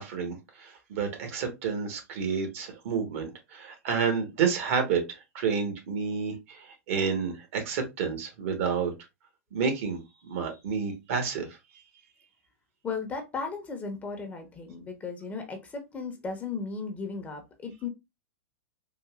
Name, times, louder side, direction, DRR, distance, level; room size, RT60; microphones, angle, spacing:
voice 1, 0.0-5.0 5.3-8.9 9.5-10.0 10.3-11.5, right 6 dB, 60° right, 1.3 m, -30 dB
voice 2, 12.8-17.9, left 4 dB, 20° left, 0.8 m, -36 dB
3.9 x 2.5 x 2.3 m
hypercardioid pair, 115°, 8 cm